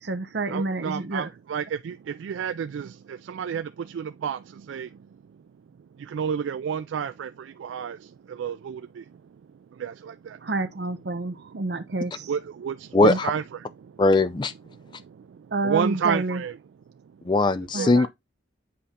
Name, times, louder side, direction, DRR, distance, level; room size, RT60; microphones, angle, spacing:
voice 1, 0.0-1.3 10.4-12.3 13.0-13.2 15.5-16.4 17.7-18.1, right 2 dB, 65° right, 0.7 m, -29 dB
voice 2, 0.5-1.9 2.2-2.9 3.3-3.6 4.0-4.4 4.7-4.9 6.1-7.3 7.6-8.0 8.4-8.8 9.8-9.9 12.3-13.4 15.6-16.5 17.8-17.9, right 7 dB, 90° right, 0.3 m, -29 dB
voice 3, 12.9-13.3 14.0-14.5 17.2-18.1, left 2 dB, 25° left, 0.4 m, -20 dB
7.7 x 4.1 x 3.5 m
head